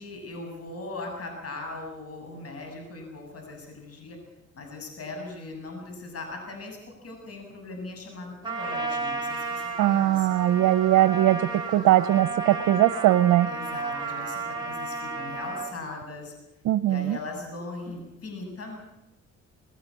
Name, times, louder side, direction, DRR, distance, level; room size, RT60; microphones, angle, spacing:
voice 1, 0.0-4.2 4.5-10.3 13.5-16.3 16.9-18.8, left 2 dB, 50° left, 3 dB, 7.1 m, -39 dB
Trumpet, 8.4-15.7, right 3 dB, 15° right, 4.3 m, -33 dB
voice 2, 9.8-13.5 16.6-17.2, right 13 dB, 85° right, 12 dB, 0.8 m, -21 dB
20.0 x 18.0 x 8.5 m, 0.93 s
cardioid pair, 90°, 30 cm